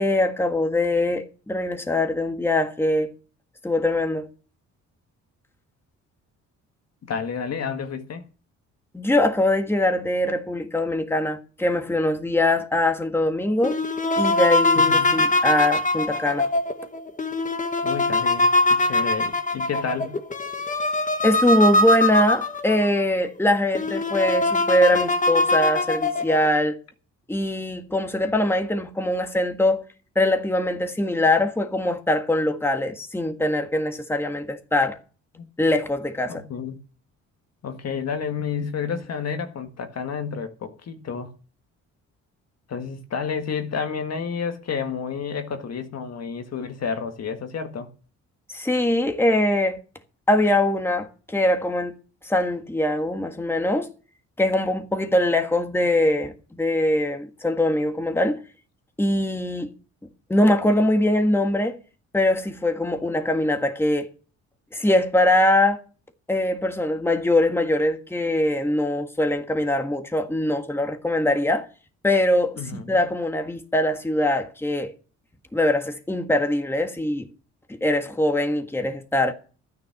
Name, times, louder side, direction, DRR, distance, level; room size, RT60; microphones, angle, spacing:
voice 1, 0.0-3.1 3.6-4.3 8.9-13.8 14.2-16.5 21.2-26.8 27.3-29.8 30.1-35.0 35.6-36.4 48.5-49.8 50.3-52.0 52.2-53.9 54.4-58.4 59.0-59.7 60.3-61.8 62.1-64.1 64.7-65.8 66.3-71.7 72.0-74.9 75.5-77.3 77.8-79.3, left 1 dB, 10° left, 1.6 m, -22 dB
voice 2, 7.0-8.2 14.8-15.3 17.8-20.1 35.4-35.5 36.2-36.8 37.6-41.3 42.7-47.9 72.6-73.0, left 6 dB, 55° left, 1.8 m, -30 dB
sound 1, 13.6-22.9 23.4-23.5 23.7-26.5, left 2 dB, 25° left, 1.4 m, -22 dB
12.5 x 9.6 x 5.9 m
cardioid pair, 90°, 30 cm